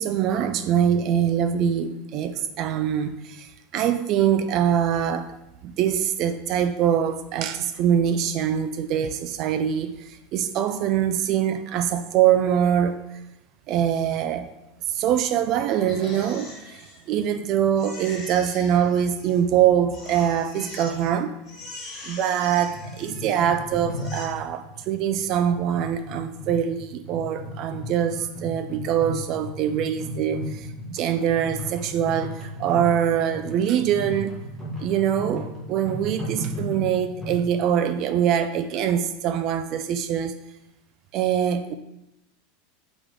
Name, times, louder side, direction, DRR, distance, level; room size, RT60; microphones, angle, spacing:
voice 1, 0.0-5.4 5.6-13.0 13.7-14.5 14.9-21.3 22.0-34.4 34.8-40.3 41.1-41.7, right 9 dB, 40° right, 10 dB, 0.3 m, -24 dB
Crying sobbing, 15.7-17.4 17.8-19.6 19.9-21.1 21.4-23.5 23.9-24.2, left 2 dB, 20° left, 1.7 m, -42 dB
sound 1, 22.6-37.4, equal, ahead, 1.2 m, -35 dB
7.9 x 3.7 x 3.3 m, 0.89 s
supercardioid pair, 160°, 0 cm